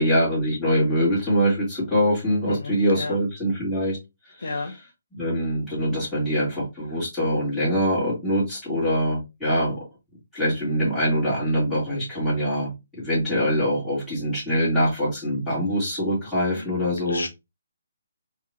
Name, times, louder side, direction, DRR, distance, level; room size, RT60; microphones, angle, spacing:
voice 1, 0.0-4.0 4.3-4.8 5.1-9.8 10.3-12.7 13.0-17.2, equal, ahead, 2.0 m, -24 dB
voice 2, 2.5-3.2 4.4-4.7 16.6-16.7 17.1-17.3, left 3 dB, 75° left, 0.8 m, -31 dB
3.5 x 2.4 x 3.2 m
hypercardioid pair, 155°, 0 cm